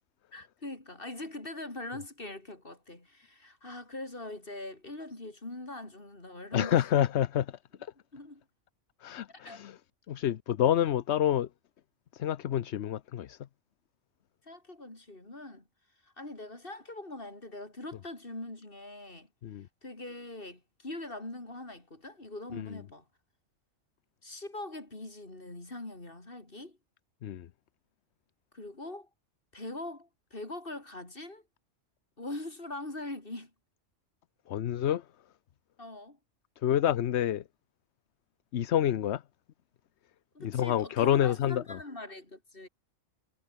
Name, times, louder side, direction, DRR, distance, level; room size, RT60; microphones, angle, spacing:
voice 1, 0.3-6.8 8.1-8.4 9.3-9.6 14.4-15.6 16.0-19.3 19.8-23.0 24.2-26.8 28.5-29.1 29.5-31.4 32.2-33.5 35.8-36.2 40.3-42.7, left 2 dB, 45° left, 4.7 m, -42 dB
voice 2, 6.5-7.9 9.0-9.8 10.1-11.5 12.1-13.4 19.4-19.7 22.5-22.8 27.2-27.5 34.5-35.0 36.6-37.4 38.5-39.2 40.4-41.8, left 10 dB, 65° left, 1.0 m, -28 dB
omnidirectional pair, 1.3 m